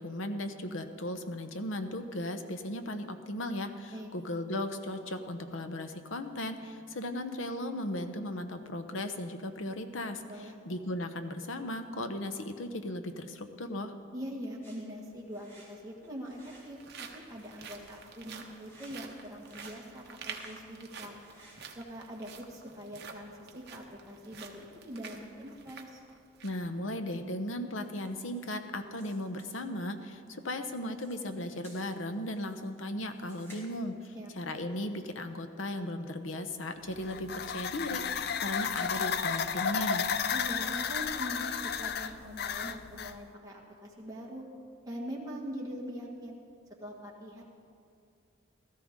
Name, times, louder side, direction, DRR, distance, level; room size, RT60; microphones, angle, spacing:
voice 1, 0.0-13.9 26.4-40.1, left 1 dB, 75° left, 8 dB, 0.9 m, -36 dB
voice 2, 14.1-21.1 21.7-26.0 34.1-34.3 40.3-44.4 44.8-46.4 46.8-47.4, equal, 20° right, -3 dB, 1.7 m, -43 dB
sound 1, 14.6-15.7 16.0-16.7 17.1-18.1 18.5-19.8 20.0-20.6 21.0-21.9 22.6-22.9 27.8-28.6 28.9-29.9 31.0-32.7 33.1-33.7, right 1 dB, 10° left, 3.5 m, -58 dB
sound 2, 15.1-15.2 16.1-26.7 27.1-27.2 27.7-27.9, right 6 dB, 55° right, 1.0 m, -49 dB
sound 3, 36.9-43.2, left 7 dB, 50° left, 0.4 m, -33 dB
17.0 x 13.5 x 3.7 m, 2.4 s
head